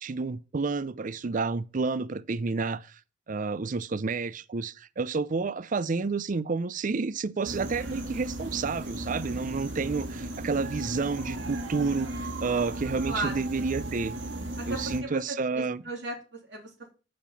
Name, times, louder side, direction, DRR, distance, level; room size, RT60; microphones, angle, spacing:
voice 1, 0.0-3.0 3.3-14.2 14.7-15.8, right 4 dB, 45° right, 0.5 m, -30 dB
sound 1, 7.4-15.0, right 1 dB, 90° right, 1.8 m, -36 dB
voice 2, 13.1-13.7 14.7-16.9, right 2 dB, 70° right, 3.2 m, -36 dB
8.6 x 5.9 x 7.2 m
head